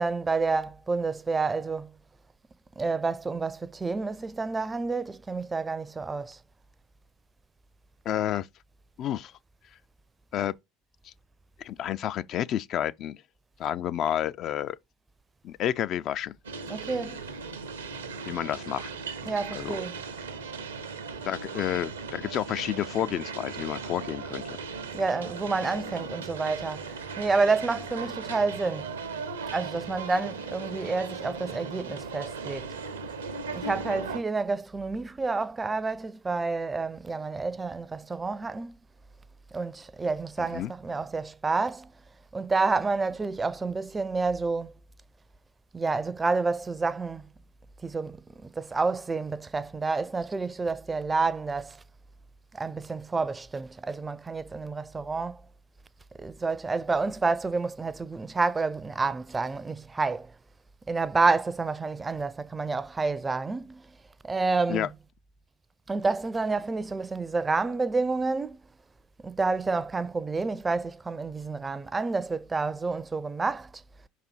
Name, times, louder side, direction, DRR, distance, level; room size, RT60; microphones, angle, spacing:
voice 1, 0.0-1.9 2.8-6.4 16.7-17.2 19.2-20.0 24.9-28.9 29.5-32.7 33.5-38.7 39.5-41.9 42.3-44.7 45.7-47.3 47.8-51.8 52.5-55.4 56.2-60.3 60.9-64.0 64.2-64.9 65.9-68.6 69.2-73.8, right 4 dB, 20° right, 0.4 m, -29 dB
voice 2, 8.1-8.5 9.0-9.3 10.3-10.5 11.0-11.1 11.6-13.2 13.6-14.8 15.4-16.3 18.3-18.9 19.6-19.8 21.2-24.6 40.4-40.7 64.7-64.9, left 11 dB, 50° left, 0.3 m, -30 dB
sound 1, 16.4-34.2, right 5 dB, 85° right, 0.7 m, -38 dB
5.2 x 4.0 x 4.5 m
hypercardioid pair, 70°, 0 cm